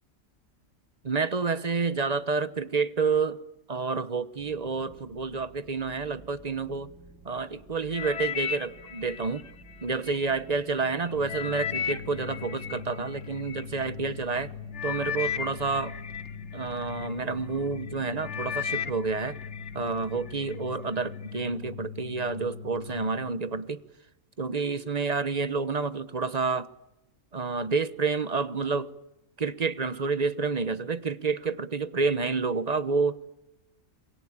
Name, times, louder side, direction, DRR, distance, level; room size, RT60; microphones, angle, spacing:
voice 1, 1.0-3.4 3.7-6.9 7.2-9.4 9.8-14.5 14.8-16.0 16.5-19.4 19.7-23.8 24.4-26.7 27.3-28.9 29.4-33.4, right 4 dB, 30° right, 15 dB, 1.1 m, -29 dB
sound 1, 4.4-20.4, right 1 dB, 60° right, 6.6 m, -54 dB
sound 2, 7.9-10.3 10.8-13.6 14.3-14.5 14.7-17.1 17.6-17.9 18.2-19.7 20.1-20.6 21.2-21.3, left 8 dB, 55° left, 1.5 m, -35 dB
sound 3, 11.1-23.3, left 7 dB, 80° left, 2.4 m, -41 dB
28.0 x 22.5 x 8.8 m, 0.91 s
omnidirectional pair, 1.4 m